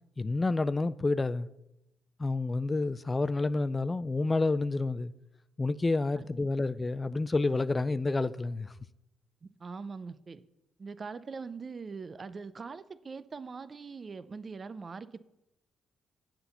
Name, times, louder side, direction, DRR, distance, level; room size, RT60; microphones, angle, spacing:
voice 1, 0.2-1.5 2.2-5.1 5.6-8.7, left 3 dB, 25° left, 0.3 m, -29 dB
voice 2, 9.4-10.4 10.8-15.2, right 4 dB, 35° right, 0.5 m, -42 dB
7.7 x 5.8 x 6.9 m
cardioid pair, 90°, 0 cm